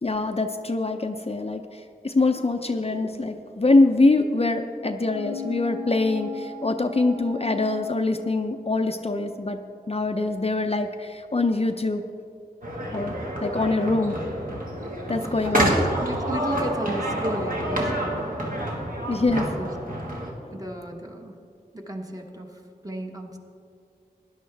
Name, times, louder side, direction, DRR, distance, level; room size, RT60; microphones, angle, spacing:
voice 1, 0.0-9.6 9.9-12.0 12.9-13.1 13.4-14.2 15.1-15.8 19.1-19.5 20.4-20.6, left 2 dB, 40° left, 6 dB, 0.5 m, -24 dB
sound 1, 5.0-8.7 9.1-9.2, left 6 dB, 75° right, 2.9 m, -37 dB
sound 2, 12.6-20.3, right 1 dB, 60° right, 1.7 m, -28 dB
voice 2, 15.6-17.9 19.0-19.1 19.5-19.7 20.5-21.3 21.7-23.4, right 1 dB, 20° right, 1 dB, 1.3 m, -34 dB
17.0 x 11.0 x 3.4 m, 2.5 s
wide cardioid pair, 60°, 16 cm